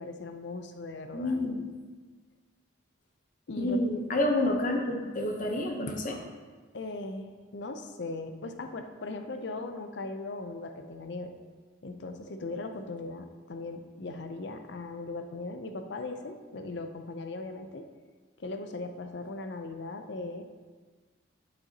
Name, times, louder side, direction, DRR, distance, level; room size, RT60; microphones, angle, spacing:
voice 1, 0.0-1.4 3.5-3.8 6.7-11.3 11.8-17.8 18.4-20.4, left 3 dB, 65° left, 6 dB, 0.6 m, -38 dB
voice 2, 1.1-1.6 3.6-6.2, left 1 dB, 40° left, 2 dB, 0.9 m, -29 dB
11.5 x 5.5 x 2.9 m, 1.4 s
head